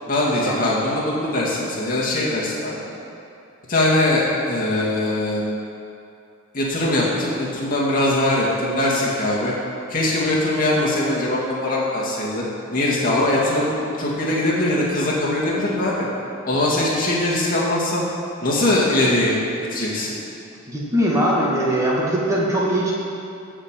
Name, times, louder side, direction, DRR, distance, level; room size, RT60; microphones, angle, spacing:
voice 1, 0.1-2.8 3.7-5.4 6.5-9.5 9.9-12.4 12.7-16.1 16.4-18.0 18.4-19.4 19.7-20.1, left 1 dB, 40° left, -6 dB, 2.2 m, -21 dB
voice 2, 20.7-22.9, equal, 15° right, -5 dB, 1.6 m, -21 dB
13.5 x 5.2 x 7.5 m, 2.6 s
head